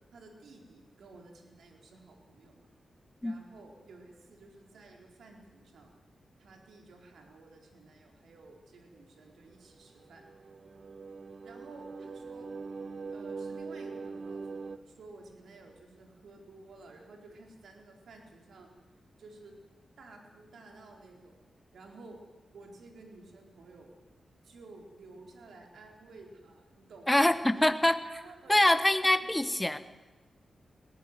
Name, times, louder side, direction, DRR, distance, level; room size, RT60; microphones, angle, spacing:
voice 1, 0.1-2.7 3.2-5.9 6.4-10.2 11.4-12.5 13.1-18.7 19.2-19.6 20.0-21.4 21.7-22.2 22.5-23.9 24.4-27.6 28.0-29.2 29.5-29.6, right 3 dB, 80° right, 2 dB, 4.1 m, -53 dB
sound 1, 9.8-14.8, right 4 dB, 45° right, 0.7 m, -42 dB
voice 2, 27.1-28.0 28.5-29.8, left 1 dB, 10° left, 11 dB, 1.0 m, -24 dB
20.0 x 16.5 x 9.6 m, 1.2 s
wide cardioid pair, 105°, 0 cm